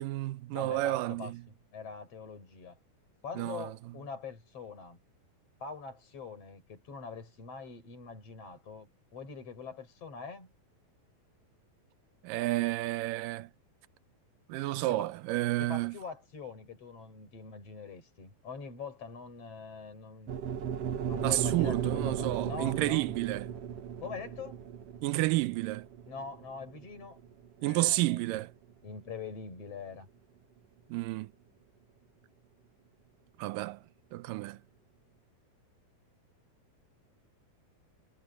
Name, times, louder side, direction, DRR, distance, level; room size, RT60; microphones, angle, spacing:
voice 1, 0.0-1.4 3.4-3.7 12.2-13.5 14.5-16.0 21.2-23.5 25.0-25.9 27.6-28.5 30.9-31.3 33.4-33.8 34.1-34.6, right 18 dB, 75° right, 2.2 m, -31 dB
voice 2, 0.5-1.3 1.7-2.7 3.2-5.0 5.6-10.5 15.0-15.1 15.7-20.3 21.1-23.1 24.0-24.6 26.1-27.2 27.6-28.3 28.8-30.1, left 5 dB, 40° left, 6.7 m, -43 dB
sound 1, 20.3-28.5, right 8 dB, 60° right, 1.8 m, -36 dB
omnidirectional pair, 4.3 m